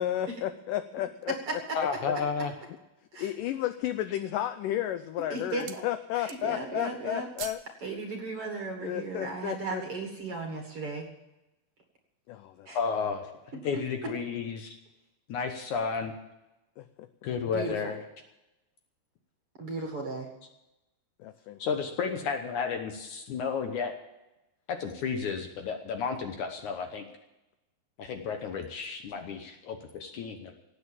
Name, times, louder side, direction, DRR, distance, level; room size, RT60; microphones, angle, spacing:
voice 1, 0.0-1.3 1.8-1.9 3.2-7.6 8.8-9.8 12.3-12.7 16.8-17.1 21.2-21.8, left 12 dB, 80° left, 11 dB, 1.9 m, -33 dB
sound 1, 1.0-2.0 2.6-2.7 3.2-3.7 4.4-4.8 5.1-5.9 6.2-6.7 7.0-7.7 8.1-8.2, right 10 dB, 80° right, 2.8 m, -46 dB
voice 2, 1.7-2.5 12.7-13.3 13.6-14.8 15.3-16.1 17.2-18.0 21.6-23.9 24.7-27.0 28.0-30.5, left 5 dB, 65° left, 5 dB, 2.1 m, -32 dB
voice 3, 5.3-5.8 6.1-7.3 7.8-11.1 12.7-12.8 13.7-13.8 17.5-17.9 19.6-20.3, right 3 dB, 45° right, 3 dB, 2.1 m, -36 dB
17.5 x 8.7 x 7.2 m, 0.96 s
omnidirectional pair, 4.4 m